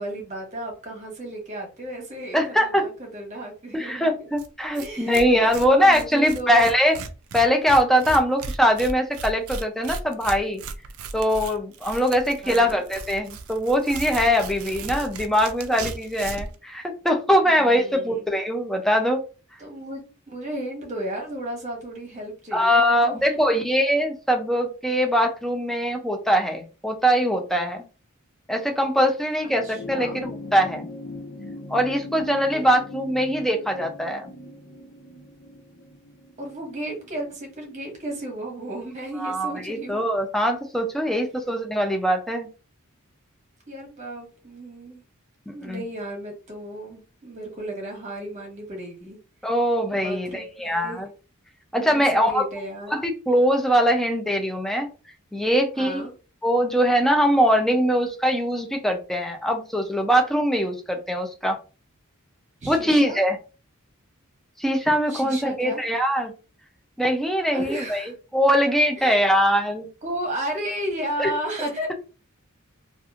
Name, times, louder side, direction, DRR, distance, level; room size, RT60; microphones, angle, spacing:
voice 1, 0.0-4.3 4.7-6.7 12.4-12.8 17.4-18.4 19.6-23.4 29.4-30.2 32.5-32.7 36.4-40.1 41.1-41.4 43.7-45.0 45.5-49.5 49.9-51.0 51.8-53.0 55.8-56.1 62.6-63.2 65.1-65.8 67.5-68.1 69.0-69.2 70.0-72.0, right 1 dB, 35° right, 1 dB, 1.1 m, -34 dB
voice 2, 2.3-2.9 3.7-6.9 7.3-10.6 11.1-19.2 22.5-27.8 28.5-30.9 31.7-34.3 39.2-42.5 45.5-45.8 49.4-51.1 51.7-52.5 52.9-54.9 55.3-56.0 56.4-61.6 62.7-63.4 64.6-66.3 67.0-68.0 68.3-69.9 71.2-71.3, equal, ahead, 3 dB, 0.4 m, -22 dB
Tearing, 4.4-4.5 4.7-4.9 5.1-16.5, right 4 dB, 75° right, 0.4 m, -36 dB
sound 1, 29.4-38.1 39.3-39.4, left 2 dB, 70° left, 0.6 m, -40 dB
2.9 x 2.4 x 2.4 m, 0.34 s
head